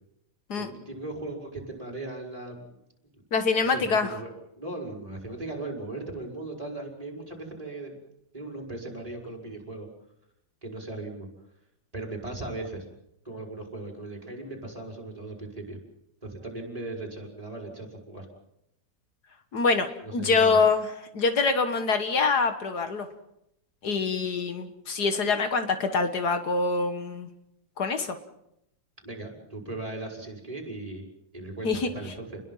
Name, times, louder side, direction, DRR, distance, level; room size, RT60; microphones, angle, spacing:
voice 1, 0.6-2.8 3.1-3.2 3.6-8.0 8.3-9.9 10.6-11.3 11.9-12.8 13.2-15.8 16.2-18.3 20.0-20.6 29.0-31.1 31.3-32.4, right 2 dB, 20° right, -1 dB, 5.7 m, -38 dB
voice 2, 3.3-4.1 19.5-20.8 21.1-23.1 23.8-27.3 27.8-28.2 31.6-31.9, left 4 dB, 70° left, 7 dB, 2.0 m, -25 dB
29.5 x 21.5 x 5.7 m, 0.80 s
omnidirectional pair, 1.8 m